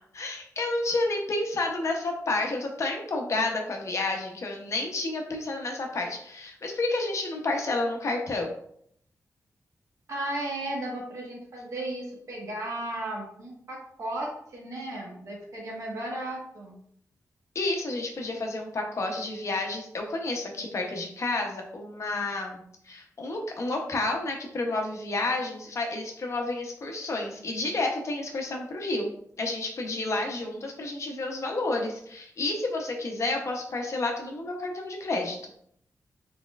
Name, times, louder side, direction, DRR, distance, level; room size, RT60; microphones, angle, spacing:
voice 1, 0.1-8.5 17.5-29.1 29.4-35.5, left 2 dB, 55° left, 2 dB, 0.8 m, -30 dB
voice 2, 10.1-16.8, right 1 dB, 60° right, -3 dB, 1.4 m, -35 dB
4.2 x 4.2 x 2.4 m, 0.68 s
wide cardioid pair, 170°, 6 cm